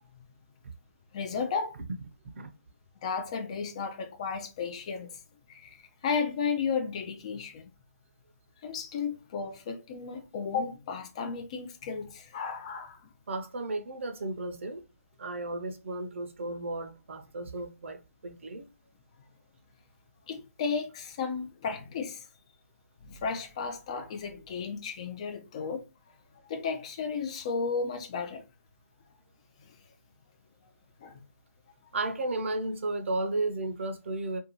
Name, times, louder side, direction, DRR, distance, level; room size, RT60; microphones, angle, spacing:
voice 1, 1.1-1.8 3.0-5.2 5.5-5.8 6.0-7.6 8.6-13.0 20.3-22.2 23.0-25.8 26.5-28.4 31.0-31.2, left 5 dB, 25° left, 0.4 m, -33 dB
voice 2, 13.3-14.8 15.2-18.7 31.9-34.4, right 2 dB, 50° right, 0.6 m, -34 dB
2.6 x 2.3 x 2.8 m
figure-of-eight pair, 155°, 8 cm